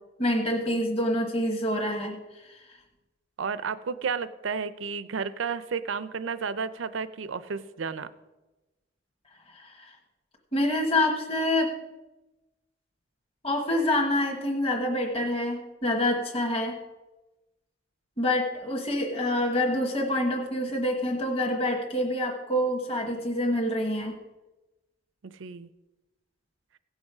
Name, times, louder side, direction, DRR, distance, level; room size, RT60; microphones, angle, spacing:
voice 1, 0.2-2.6 9.5-9.9 10.5-11.7 13.4-16.8 18.2-24.2, left 1 dB, 30° left, 1 dB, 1.3 m, -27 dB
voice 2, 3.4-8.1 25.2-25.7, right 5 dB, 80° right, 14 dB, 0.5 m, -32 dB
16.5 x 6.4 x 4.9 m, 1.1 s
head